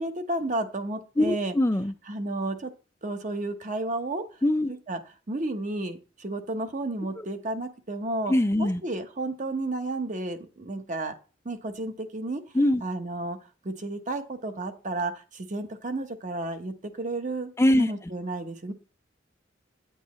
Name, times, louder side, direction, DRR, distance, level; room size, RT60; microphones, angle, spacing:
voice 1, 0.0-1.5 2.1-2.7 3.0-4.2 4.7-5.0 5.3-8.3 8.6-11.1 11.4-12.4 12.8-13.4 13.6-17.5 17.8-18.7, right 2 dB, 40° right, 7 dB, 1.0 m, -32 dB
voice 2, 1.2-1.9 4.4-4.7 8.3-8.8 12.5-12.8 17.6-18.1, left 1 dB, 15° left, 8 dB, 0.4 m, -22 dB
9.5 x 8.0 x 3.1 m, 0.35 s
head